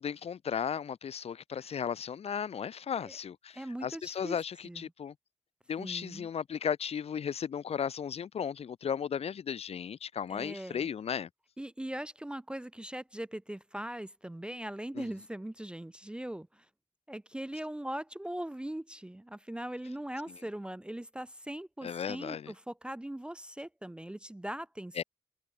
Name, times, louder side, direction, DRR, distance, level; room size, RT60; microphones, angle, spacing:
voice 1, 0.0-5.1 5.7-11.3 14.9-15.1 20.3-20.4 21.8-22.5 24.9-25.0, left 7 dB, 75° left, 0.8 m, -35 dB
voice 2, 3.5-4.4 4.6-4.9 5.8-6.3 10.3-10.9 11.6-16.7 17.1-25.0, right 1 dB, 10° right, 0.3 m, -40 dB
wide cardioid pair, 85°, 11 cm